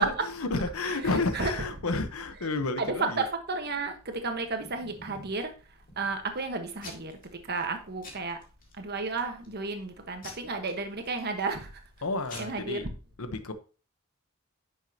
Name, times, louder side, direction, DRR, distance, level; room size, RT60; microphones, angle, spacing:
voice 1, 0.0-3.3 12.0-12.9 13.2-13.5, left 3 dB, 85° left, 1.0 m, -31 dB
voice 2, 2.8-8.4 8.7-11.8 12.4-12.9, right 3 dB, 50° right, 1.2 m, -33 dB
Packing tape duct tape / Tearing, 4.0-5.4 5.9-6.4 6.8-7.3 7.6-7.7 8.0-8.7 9.2-9.5 10.2-11.5 12.0-12.1 12.3-12.4, left 2 dB, 40° left, 2.2 m, -47 dB
10.0 x 6.4 x 2.8 m
head